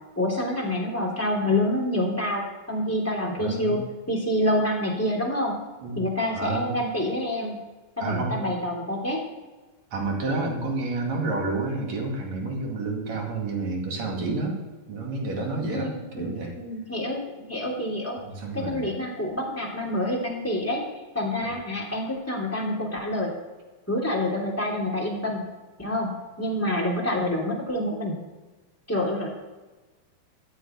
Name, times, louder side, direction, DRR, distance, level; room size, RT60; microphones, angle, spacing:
voice 1, 0.2-3.8 4.1-5.5 6.0-7.6 8.0-9.2 15.7-18.2 18.5-20.8 21.1-23.3 23.9-25.4 25.8-26.1 26.4-28.1 28.9-29.3, left 1 dB, 5° left, -1 dB, 2.3 m, -27 dB
voice 2, 3.4-3.8 5.8-6.0 6.3-6.8 8.0-8.5 9.9-14.6 14.9-16.5 18.2-18.9 21.4-21.6, right 3 dB, 50° right, 0 dB, 3.2 m, -29 dB
13.5 x 6.5 x 9.4 m, 1.2 s
omnidirectional pair, 4.6 m